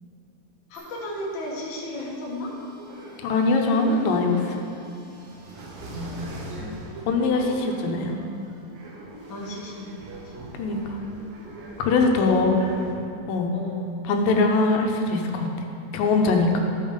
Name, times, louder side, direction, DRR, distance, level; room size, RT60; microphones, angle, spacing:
voice 1, 0.7-2.6 5.7-6.3 7.7-7.8 9.3-10.0 10.2-10.3 12.2-12.9 13.5-14.0, left 1 dB, 45° left, -4 dB, 1.7 m, -34 dB
sound 1, 0.7-12.9, right 1 dB, 80° right, 3.0 m, -42 dB
voice 2, 3.2-4.6 6.6-6.7 7.1-8.2 10.6-10.8 11.8-12.6 13.3-13.5 14.1-15.5 15.9-16.6, left 3 dB, 85° left, 2 dB, 2.5 m, -22 dB
13.0 x 5.5 x 5.1 m, 2.7 s
omnidirectional pair, 4.0 m